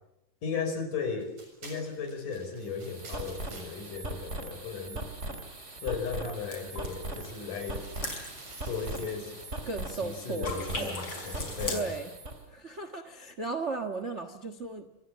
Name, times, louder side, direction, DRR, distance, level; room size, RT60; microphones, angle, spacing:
voice 1, 0.4-1.3 1.6-5.0 5.8-7.8 8.6-9.4 10.0-11.9, left 5 dB, 70° left, 7 dB, 6.3 m, -36 dB
sound 1, 1.2-5.5 6.1-6.3 6.6-10.4, right 2 dB, 65° right, 8.3 m, -54 dB
sound 2, 2.6-12.4, right 2 dB, 20° right, 3.6 m, -40 dB
sound 3, 6.4-10.1 10.4-11.8, left 3 dB, 40° left, 5.8 m, -41 dB
voice 2, 9.7-11.0 11.4-12.1 12.5-14.9, right 3 dB, 45° right, 11 dB, 0.9 m, -36 dB
26.5 x 26.5 x 7.4 m, 0.86 s
omnidirectional pair, 3.9 m